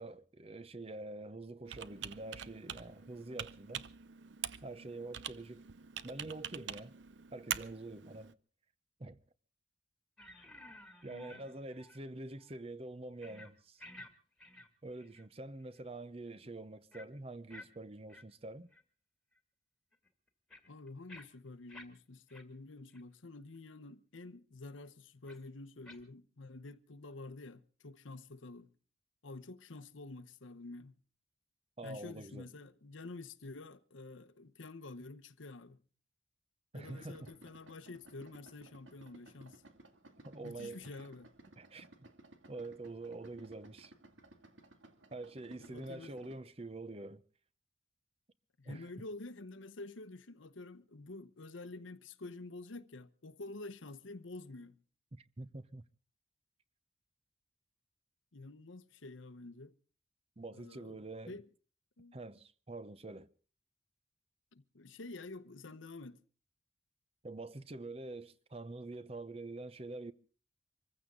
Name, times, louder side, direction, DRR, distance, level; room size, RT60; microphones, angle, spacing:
voice 1, 0.0-3.9 4.6-5.6 6.0-6.9 7.3-8.3 9.0-9.2 11.0-13.8 14.8-18.7 31.8-32.5 36.7-37.3 40.2-40.9 41.6-42.1 42.5-43.9 45.1-47.2 48.7-48.9 55.1-55.8 60.4-61.3 62.1-63.3 67.2-70.1, right 2 dB, 30° right, 0.7 m, -46 dB
Computer keyboard, 1.6-8.3, right 9 dB, 70° right, 0.7 m, -44 dB
sound 1, 10.2-12.1 12.4-12.6 13.2-13.5 13.8-14.1 14.4-15.3 15.6-15.8 16.9-17.1 17.5-17.7 18.1-18.2 18.7-18.8 19.4-19.5 19.9-21.9 22.3-22.4 22.9-23.0 23.5-23.6 25.3-25.4 25.9-26.0, left 1 dB, ahead, 2.1 m, -54 dB
voice 2, 11.1-11.5 20.7-28.7 29.2-30.9 31.8-35.8 36.7-39.6 40.4-41.3 45.6-46.3 48.6-54.8 58.3-59.7 60.5-61.5 62.0-62.2 64.5-66.2, left 2 dB, 85° left, 1.0 m, -49 dB
Idling, 36.8-46.4, right 1 dB, 85° right, 2.3 m, -59 dB
25.0 x 15.0 x 3.8 m
head